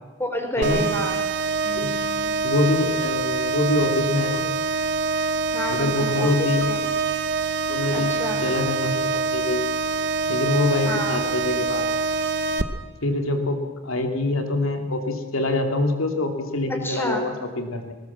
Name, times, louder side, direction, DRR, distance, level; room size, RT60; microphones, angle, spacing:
voice 1, 0.2-1.2 1.6-2.3 5.5-6.3 6.7-6.8 7.9-8.4 10.9-11.2 16.8-17.2, equal, 10° left, 4 dB, 3.5 m, -30 dB
sound 1, 0.6-12.6, right 4 dB, 55° right, 1.1 m, -25 dB
voice 2, 2.4-4.4 5.7-6.7 7.7-8.1 8.4-9.7 10.3-11.9 13.0-17.9, left 2 dB, 70° left, 5 dB, 2.7 m, -25 dB
20.0 x 19.0 x 7.4 m, 1.4 s
head